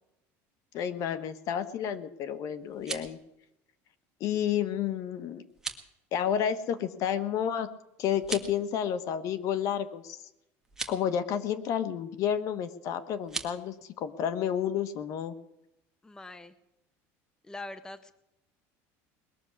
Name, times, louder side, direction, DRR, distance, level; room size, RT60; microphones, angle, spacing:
voice 1, 0.7-3.2 4.2-5.4 6.1-7.7 8.0-10.2 10.9-15.3, left 9 dB, 55° left, 12 dB, 1.3 m, -30 dB
sound 1, 2.6-3.2 5.5-5.9 8.1-8.6 10.6-11.0 13.2-13.5, right 3 dB, 10° right, 1.7 m, -38 dB
voice 2, 16.0-16.5 17.4-18.1, left 2 dB, 10° left, 13 dB, 0.8 m, -43 dB
20.5 x 7.1 x 9.6 m, 0.87 s
cardioid pair, 135°, 7 cm